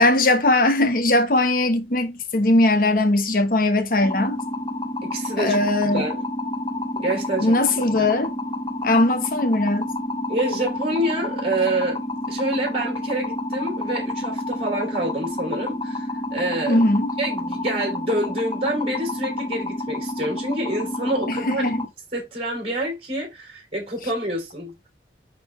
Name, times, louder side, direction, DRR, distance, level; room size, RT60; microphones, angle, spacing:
voice 1, 0.0-4.4 5.4-6.0 7.4-8.3 8.8-9.9 16.7-17.1 21.3-21.8, left 2 dB, 50° left, 1.1 m, -19 dB
sound 1, 4.0-21.9, left 1 dB, 25° left, 1.3 m, -29 dB
voice 2, 5.0-5.6 5.8-6.2 7.0-8.1 10.3-12.0 12.3-16.9 17.2-21.6 22.1-24.7, right 1 dB, 35° right, 3.7 m, -27 dB
9.4 x 3.8 x 3.4 m
head